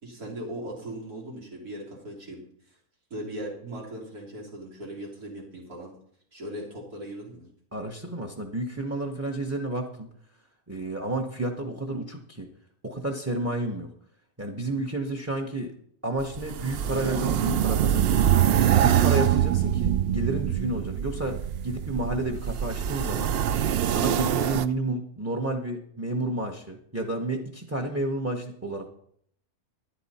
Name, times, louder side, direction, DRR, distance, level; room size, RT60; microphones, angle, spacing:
voice 1, 0.0-2.8 3.1-5.9 6.3-7.5, right 1 dB, 85° right, -3 dB, 4.2 m, -39 dB
voice 2, 7.7-10.1 10.7-12.5 12.8-13.9 14.4-15.7 16.0-18.3 18.8-23.3 23.8-28.9, right 2 dB, 10° right, 3 dB, 0.9 m, -31 dB
sound 1, 16.2-24.7, right 10 dB, 70° right, 0.5 m, -24 dB
12.5 x 10.5 x 4.3 m, 0.65 s
omnidirectional pair, 1.6 m